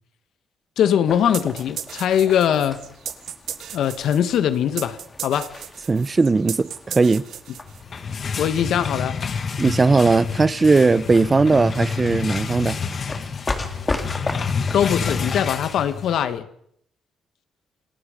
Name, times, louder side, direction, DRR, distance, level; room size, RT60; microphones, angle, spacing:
voice 1, 0.8-2.8 3.7-5.5 8.4-9.2 14.7-16.4, left 9 dB, 75° left, 1.8 m, -21 dB
sound 1, 1.1-16.2, left 3 dB, 25° left, 3.4 m, -37 dB
sound 2, 1.3-8.0, right 9 dB, 70° right, 1.7 m, -35 dB
voice 2, 5.9-7.2 9.6-12.8, right 3 dB, 25° right, 0.9 m, -18 dB
sound 3, 7.7-16.3, left 5 dB, 45° left, 2.0 m, -28 dB
27.5 x 18.5 x 5.4 m
cardioid pair, 90°, 0 cm